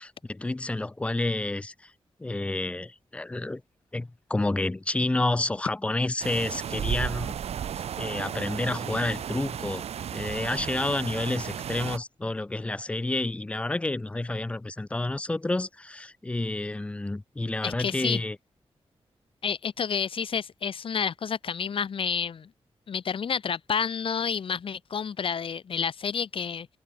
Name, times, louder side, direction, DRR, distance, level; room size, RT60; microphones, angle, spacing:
voice 1, 0.0-1.9 2.2-3.6 3.9-7.4 8.0-9.8 10.1-18.4, left 2 dB, 10° left, 0.3 m, -29 dB
sound 1, 6.2-12.0, right 9 dB, 70° right, 0.5 m, -34 dB
voice 2, 17.6-18.2 19.4-22.5 22.9-26.7, left 7 dB, 55° left, 0.9 m, -29 dB
wide cardioid pair, 165°, 11 cm